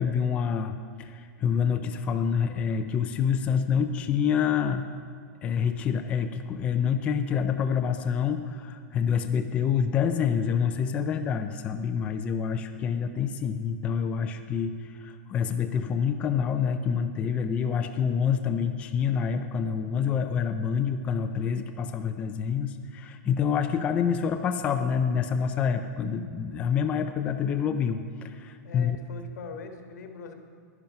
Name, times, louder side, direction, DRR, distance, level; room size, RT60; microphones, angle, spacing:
voice 1, 0.0-4.9 5.4-29.0, left 7 dB, 15° left, 7 dB, 0.3 m, -27 dB
voice 2, 28.6-30.3, left 5 dB, 80° left, 5 dB, 1.4 m, -41 dB
10.5 x 10.5 x 5.7 m, 2.1 s
supercardioid pair, 170°, 9 cm